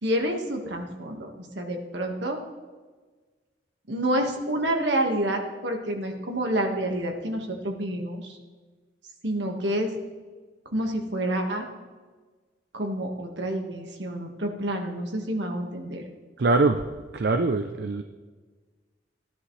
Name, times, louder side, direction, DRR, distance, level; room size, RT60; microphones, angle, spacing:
voice 1, 0.0-1.3 1.5-2.4 3.9-8.4 9.2-9.9 10.7-11.7 12.7-16.0, right 1 dB, 75° right, 3 dB, 1.6 m, -28 dB
voice 2, 16.4-16.8 17.1-18.0, right 3 dB, 60° right, 7 dB, 0.5 m, -23 dB
16.5 x 11.0 x 3.2 m, 1.4 s
head